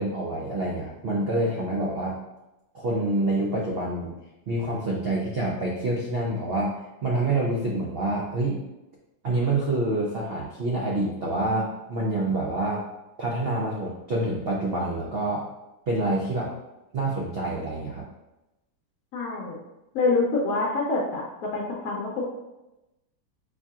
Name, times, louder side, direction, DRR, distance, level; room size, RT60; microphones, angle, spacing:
voice 1, 0.0-2.2 2.7-4.1 4.5-8.6 9.2-12.8 13.2-15.4 15.9-16.5 16.9-18.1, right 2 dB, 80° right, -4 dB, 0.5 m, -27 dB
voice 2, 19.1-19.6 19.9-22.2, left 3 dB, 65° left, -3 dB, 1.0 m, -26 dB
4.6 x 2.7 x 2.3 m, 0.97 s
omnidirectional pair, 1.8 m